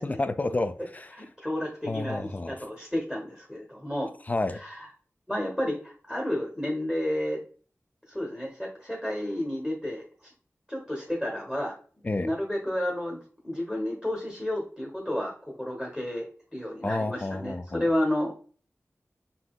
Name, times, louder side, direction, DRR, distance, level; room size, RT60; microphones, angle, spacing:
voice 1, 0.0-1.1 1.9-2.6 4.3-4.6 12.0-12.3 16.8-17.9, left 2 dB, 30° left, 0.3 m, -30 dB
voice 2, 1.1-4.1 4.6-4.9 5.3-7.4 8.1-10.3 10.7-11.8 12.2-18.3, left 1 dB, 5° left, 1.0 m, -31 dB
5.6 x 2.8 x 2.3 m
wide cardioid pair, 70°, 5 cm